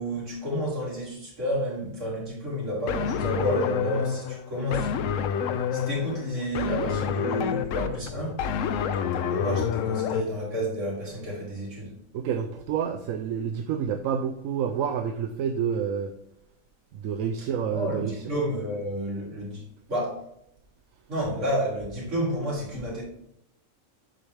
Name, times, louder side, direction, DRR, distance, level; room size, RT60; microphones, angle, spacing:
voice 1, 0.0-4.9 5.7-8.4 9.3-11.9 17.7-19.6 19.9-20.2 21.1-23.0, equal, 65° right, -6 dB, 3.4 m, -30 dB
sound 1, 2.9-10.2, left 7 dB, 75° left, 0.9 m, -28 dB
voice 2, 12.1-16.1 17.0-18.1, right 7 dB, 85° right, 7 dB, 1.0 m, -28 dB
7.9 x 5.6 x 3.3 m, 0.78 s
omnidirectional pair, 1.4 m